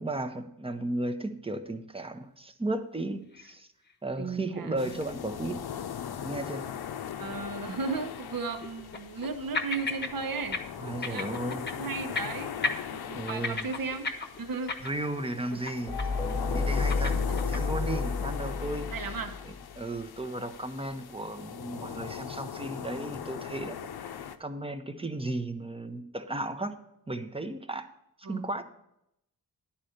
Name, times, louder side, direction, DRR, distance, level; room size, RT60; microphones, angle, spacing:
voice 1, 0.0-3.7 4.0-5.6 6.2-6.7 10.8-11.7 13.1-13.7 14.8-15.9 16.5-17.2 17.5-18.9 19.8-24.1 24.4-26.8 27.1-27.9 28.3-28.6, right 2 dB, 15° right, 7 dB, 0.7 m, -34 dB
sound 1, 3.3-3.5 3.9-4.0 4.6-4.7 7.8-7.9 8.6-9.3 9.5-10.1 10.4-10.6 10.9-11.9 12.2-12.4 12.6-15.2 15.5-15.7 16.0-16.3 16.6-17.7, left 4 dB, 30° left, 0.9 m, -33 dB
voice 2, 4.2-4.9 7.2-10.6 11.0-14.1 14.4-14.7 15.5-15.6 17.3-17.4 18.9-19.4 28.2-28.5, right 4 dB, 65° right, 7 dB, 1.1 m, -35 dB
sound 2, 4.8-24.4, left 8 dB, 85° left, 0.7 m, -39 dB
sound 3, 15.9-19.6, left 4 dB, 10° left, 1.4 m, -31 dB
10.5 x 4.3 x 6.4 m, 0.80 s
wide cardioid pair, 105°, 37 cm